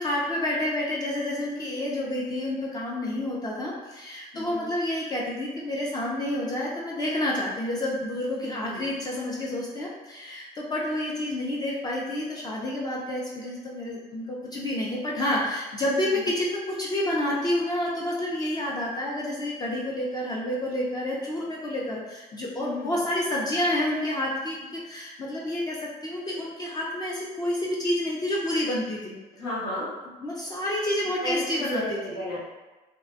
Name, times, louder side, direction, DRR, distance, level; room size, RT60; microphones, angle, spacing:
voice 1, 0.0-29.2 30.2-32.2, left 1 dB, 25° left, -5 dB, 0.4 m, -29 dB
voice 2, 4.3-4.7 8.4-8.8 16.1-16.2 22.6-22.9 29.3-29.9 31.2-31.4 31.7-32.4, left 1 dB, 90° left, -11 dB, 0.8 m, -33 dB
2.5 x 2.1 x 2.4 m, 1.1 s
cardioid pair, 110°, 17 cm